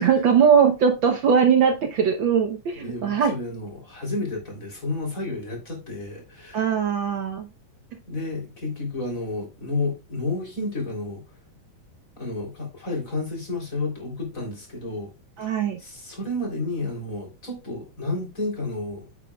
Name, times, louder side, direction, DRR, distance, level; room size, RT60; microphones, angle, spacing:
voice 1, 0.0-3.3 6.5-7.5 15.4-15.8, right 7 dB, 90° right, 1.0 m, -20 dB
voice 2, 2.8-6.7 8.1-11.2 12.2-15.1 15.8-19.1, left 2 dB, 25° left, 3.7 m, -31 dB
9.0 x 8.4 x 2.3 m
omnidirectional pair, 3.6 m